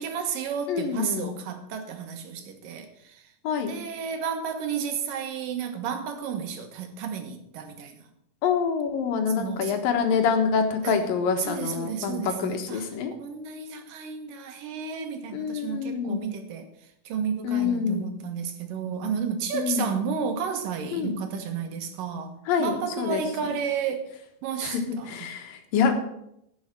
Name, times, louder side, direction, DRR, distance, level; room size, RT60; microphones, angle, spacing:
voice 1, 0.0-3.3 3.6-8.0 9.4-9.8 10.8-11.0 11.4-12.8 13.2-16.7 17.1-24.1 24.4-25.3, right 6 dB, 75° right, 2.9 m, -32 dB
voice 2, 0.7-1.4 3.4-3.8 8.4-13.1 15.3-16.3 17.4-18.1 19.5-19.9 20.9-21.1 22.5-23.2 24.6-24.8 25.1-25.9, left 6 dB, 80° left, 3.1 m, -26 dB
11.0 x 7.2 x 7.5 m
omnidirectional pair, 4.0 m